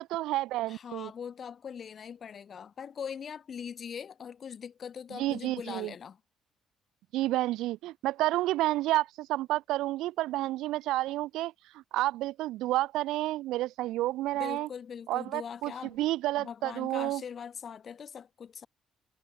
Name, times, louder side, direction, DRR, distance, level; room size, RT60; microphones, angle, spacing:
voice 1, 0.0-1.1 5.1-5.9 7.1-14.7 15.1-17.2, right 16 dB, 85° right, 3.0 m, -30 dB
voice 2, 0.7-6.2 14.4-16.0 16.4-18.7, left 7 dB, 35° left, 3.3 m, -41 dB
cardioid pair, 170°, 0 cm